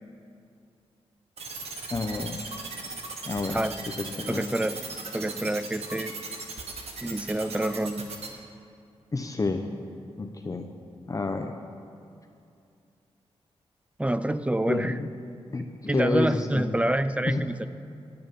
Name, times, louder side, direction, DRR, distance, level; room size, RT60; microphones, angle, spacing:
sound 1, 1.4-8.3, right 4 dB, 75° right, 1.7 m, -37 dB
voice 1, 1.9-2.5 3.3-3.6 4.0-4.4 9.1-9.7 10.2-10.7 11.1-11.5 14.7-15.1 15.5-16.7 17.3-17.4, left 3 dB, 35° left, 5 dB, 0.8 m, -29 dB
voice 2, 4.3-4.8 5.1-6.1 7.0-8.1 14.0-14.9 15.9-17.7, right 1 dB, 10° right, 13 dB, 0.6 m, -27 dB
18.0 x 8.9 x 5.4 m, 2.5 s
cardioid pair, 65°, 11 cm